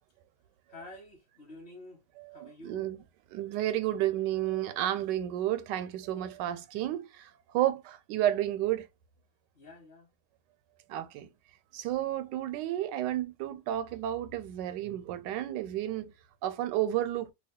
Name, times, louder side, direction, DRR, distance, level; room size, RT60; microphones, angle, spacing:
voice 1, 0.7-2.0 2.3-2.9 9.5-10.1, left 2 dB, 45° left, 1.0 m, -49 dB
voice 2, 2.2-3.0 3.3-8.9 10.9-11.3 11.7-16.1 16.4-17.3, right 13 dB, 90° right, 1.2 m, -31 dB
2.8 x 2.3 x 3.6 m
omnidirectional pair, 1.8 m